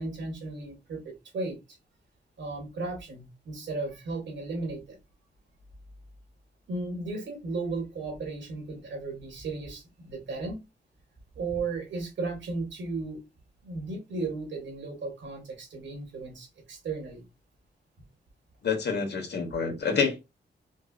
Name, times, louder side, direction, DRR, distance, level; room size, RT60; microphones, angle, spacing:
voice 1, 0.0-1.6 2.4-5.0 6.7-10.6 11.4-13.2 13.6-17.3, right 3 dB, 90° right, 2.1 m, -35 dB
voice 2, 18.6-20.2, left 5 dB, 65° left, 1.4 m, -27 dB
4.7 x 2.5 x 2.5 m
cardioid pair, 90°, 19 cm